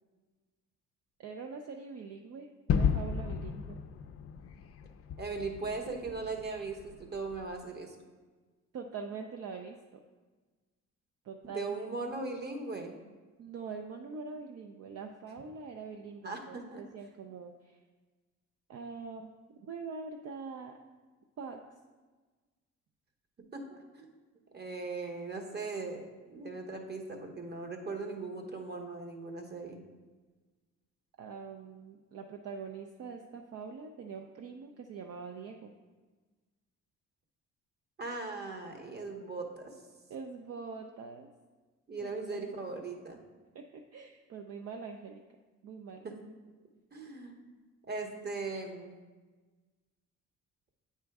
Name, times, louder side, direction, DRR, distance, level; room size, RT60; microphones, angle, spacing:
voice 1, 1.2-3.8 8.7-9.8 11.2-11.9 13.4-17.8 18.7-19.3 19.6-20.8 21.4-21.6 31.2-35.7 40.1-41.3 42.0-42.4 43.5-45.2 45.6-46.1, right 5 dB, 55° right, 3 dB, 0.6 m, -44 dB
Gunshot gunfire / Fireworks / Boom, 2.7-7.5, left 6 dB, 50° left, 0.4 m, -34 dB
voice 2, 5.2-7.9 11.4-13.0 16.2-16.8 23.5-24.1 24.5-29.8 38.0-39.7 41.9-43.2 46.0-46.1 46.9-47.4 47.9-48.9, right 3 dB, 35° right, 4 dB, 1.1 m, -39 dB
8.7 x 4.4 x 3.5 m, 1.3 s
cardioid pair, 90°, 30 cm